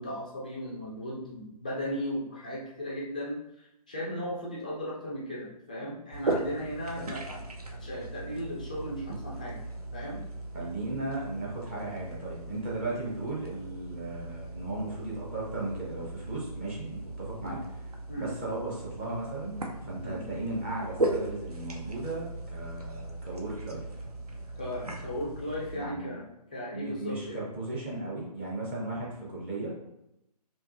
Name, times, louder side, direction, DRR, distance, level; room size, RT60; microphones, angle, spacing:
voice 1, 0.0-7.4 7.7-9.6 9.9-10.2 18.1-18.3 20.0-20.2 24.6-26.2 26.5-27.4, equal, 10° left, -5 dB, 0.4 m, -36 dB
sound 1, 6.1-25.8, right 2 dB, 65° right, 0.6 m, -38 dB
voice 2, 10.5-24.0 25.7-26.1 26.7-29.7, right 2 dB, 15° right, -5 dB, 0.8 m, -36 dB
4.6 x 3.0 x 2.7 m, 0.85 s
figure-of-eight pair, 145°, 21 cm